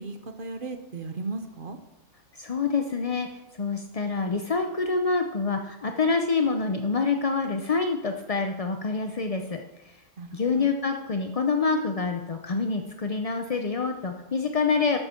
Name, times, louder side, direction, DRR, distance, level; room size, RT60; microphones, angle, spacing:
voice 1, 0.0-1.8 10.2-10.7, right 3 dB, 40° right, 7 dB, 1.0 m, -36 dB
voice 2, 2.3-3.3 3.6-10.0 10.3-15.0, left 4 dB, 45° left, 5 dB, 0.4 m, -26 dB
13.0 x 9.0 x 4.4 m, 0.97 s
omnidirectional pair, 1.6 m